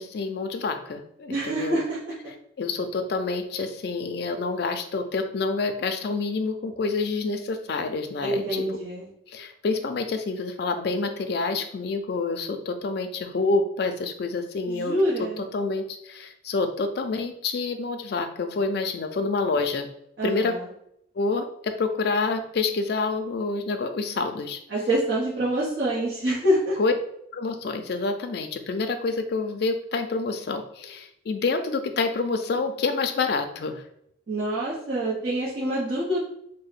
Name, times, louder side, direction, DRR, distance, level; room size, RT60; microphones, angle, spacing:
voice 1, 0.0-1.8 2.6-8.6 9.3-15.0 15.5-19.9 20.2-20.5 21.2-24.6 26.8-26.9 27.3-33.8, left 3 dB, 55° left, 7 dB, 0.4 m, -27 dB
voice 2, 1.3-2.3 8.2-9.1 14.7-15.4 20.2-20.7 24.7-26.8 34.3-36.2, right 1 dB, 55° right, -9 dB, 0.9 m, -26 dB
2.8 x 2.1 x 4.1 m, 0.73 s
head